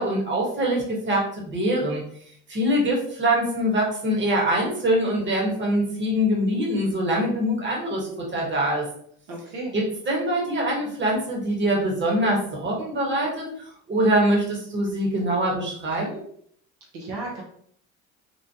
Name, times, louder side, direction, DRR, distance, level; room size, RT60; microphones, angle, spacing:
voice 1, 0.0-2.0 2.5-8.9 9.7-13.4 13.9-16.2, right 1 dB, 35° right, -2 dB, 1.3 m, -24 dB
voice 2, 9.3-9.7 16.9-17.4, right 2 dB, 75° right, -2 dB, 0.8 m, -33 dB
3.1 x 2.1 x 2.7 m, 0.64 s
supercardioid pair, 70°, 31 cm